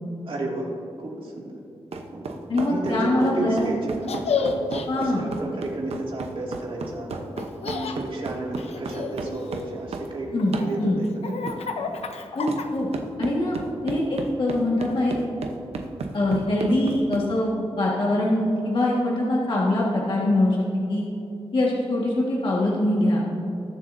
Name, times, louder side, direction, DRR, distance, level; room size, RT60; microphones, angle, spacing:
voice 1, 0.2-0.7 1.0-1.6 2.1-2.2 2.6-7.1 7.6-10.3 10.6-11.5 13.2-13.7, right 2 dB, 55° right, -2 dB, 2.3 m, -32 dB
sound 1, 1.9-10.1 10.5-10.7 11.5-11.6 12.5-12.6 12.9-17.3, right 4 dB, 80° right, 0.9 m, -34 dB
voice 2, 2.5-3.6 4.9-5.2 10.3-11.0 12.3-12.9 13.2-13.6 13.8-15.1 16.1-17.5 17.8-20.6 20.9-21.0 21.5-23.2, left 1 dB, 55° left, -4 dB, 1.7 m, -23 dB
Laughter, 4.0-4.9 7.4-8.0 8.6-9.8 10.4-13.0, left 5 dB, 85° left, 0.8 m, -31 dB
20.0 x 7.5 x 2.7 m, 2.7 s
wide cardioid pair, 100°, 10 cm